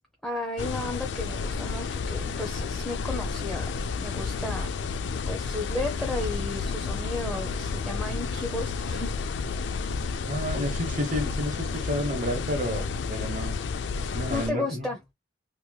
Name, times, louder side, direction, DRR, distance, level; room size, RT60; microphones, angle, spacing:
voice 1, 0.2-4.8 5.3-9.1 14.3-15.0, left 2 dB, ahead, 0.6 m, -34 dB
sound 1, 0.6-14.5, left 5 dB, 75° left, 0.4 m, -31 dB
voice 2, 10.2-13.6 14.1-14.9, equal, 45° right, 1.0 m, -31 dB
3.0 x 2.9 x 2.2 m
head